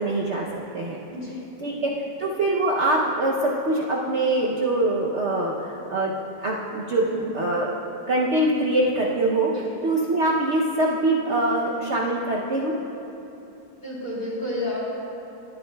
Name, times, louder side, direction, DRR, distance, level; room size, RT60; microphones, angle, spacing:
voice 1, 0.0-1.0 1.6-1.9 2.2-6.1 6.4-7.1 7.3-7.7 8.1-9.5 9.8-12.7, right 2 dB, 70° right, -3 dB, 0.6 m, -23 dB
voice 2, 13.8-14.8, left 1 dB, 25° left, -7 dB, 3.0 m, -31 dB
22.0 x 9.5 x 2.3 m, 3.0 s
omnidirectional pair, 2.2 m